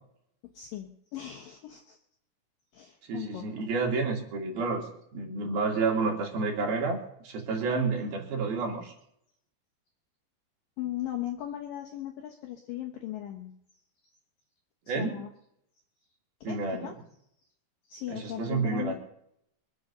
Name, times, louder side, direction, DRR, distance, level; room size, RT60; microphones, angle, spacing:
voice 1, 0.4-2.0 2.7-3.7 7.8-7.9 10.8-13.6 14.9-15.3 16.4-17.0 17.9-18.9, left 12 dB, 70° left, 3 dB, 2.2 m, -38 dB
voice 2, 3.0-7.0 7.2-8.9 14.9-15.2 16.4-16.9 18.1-19.0, right 4 dB, 60° right, 1 dB, 3.9 m, -30 dB
23.5 x 7.9 x 6.8 m, 0.74 s
omnidirectional pair, 5.2 m